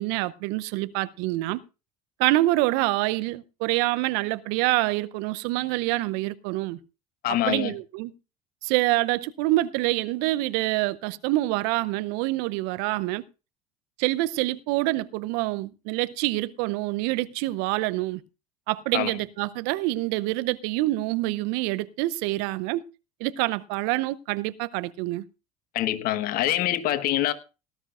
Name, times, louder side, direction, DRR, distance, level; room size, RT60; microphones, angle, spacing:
voice 1, 0.0-1.6 2.2-6.8 7.3-8.1 8.6-13.2 14.0-18.2 18.7-22.8 23.2-25.2, right 18 dB, 60° right, 0.7 m, -26 dB
voice 2, 7.2-7.7 18.9-19.1 25.7-27.3, left 13 dB, 55° left, 1.3 m, -25 dB
18.0 x 12.0 x 2.5 m
hypercardioid pair, 70°, 18 cm